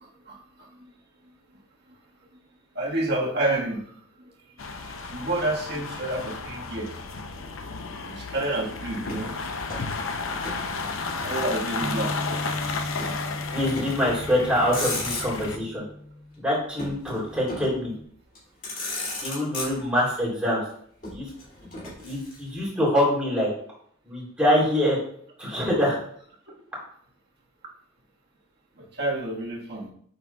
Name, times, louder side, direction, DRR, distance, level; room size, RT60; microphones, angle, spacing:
voice 1, 2.7-3.8 4.2-4.3 5.1-6.9 8.1-9.3 11.2-12.1 28.8-29.9, right 2 dB, 50° right, -3 dB, 1.6 m, -28 dB
sound 1, 4.6-15.6, left 4 dB, 75° left, 0.7 m, -33 dB
Motor vehicle (road), 9.0-10.7 10.9-12.0 13.0-13.2 13.7-14.1 14.5-15.6 16.8-17.8 18.3-18.4 18.6-20.1 21.0-22.7, left 2 dB, 40° left, 2.7 m, -35 dB
Bass guitar, 11.8-18.1, left 1 dB, 15° left, 1.0 m, -38 dB
voice 2, 13.5-15.8 16.4-17.9 19.2-20.6 21.1-21.3 22.0-23.5 24.0-25.0 25.4-26.0, equal, 5° right, -6 dB, 3.2 m, -24 dB
8.8 x 6.6 x 2.3 m, 0.63 s
head